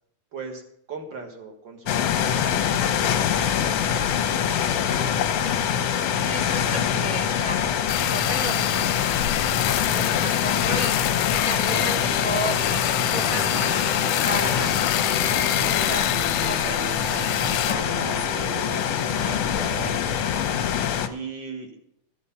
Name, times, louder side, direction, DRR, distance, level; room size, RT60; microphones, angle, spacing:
voice 1, 0.3-0.6 0.9-5.2 21.0-21.7, right 5 dB, 45° right, 4 dB, 1.7 m, -40 dB
sound 1, 1.9-21.1, left 8 dB, 70° left, 1.6 m, -24 dB
voice 2, 6.2-9.4 9.9-10.9 11.3-12.6 13.1-14.9 15.3-16.1 16.4-18.4, equal, 60° right, 0 dB, 0.8 m, -34 dB
sound 2, 7.9-17.7, left 14 dB, 90° left, 2.3 m, -27 dB
sound 3, 11.7-20.6, right 5 dB, 80° right, 2.8 m, -38 dB
14.0 x 8.5 x 5.6 m, 0.73 s
omnidirectional pair, 3.7 m